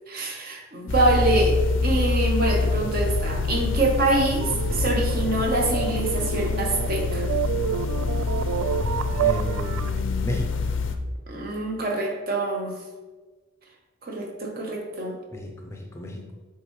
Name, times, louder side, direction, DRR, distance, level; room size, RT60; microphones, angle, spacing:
voice 1, 0.1-1.6 1.8-7.2 11.3-12.7 14.0-15.2, right 2 dB, 45° right, 1 dB, 0.9 m, -25 dB
sound 1, 0.9-11.0, left 3 dB, 65° left, 0.5 m, -26 dB
sound 2, 2.7-10.0, right 9 dB, 75° right, 0.3 m, -30 dB
voice 2, 9.2-10.6 15.3-16.3, left 1 dB, 15° left, 0 dB, 0.5 m, -33 dB
8.5 x 3.6 x 3.1 m, 1.3 s
head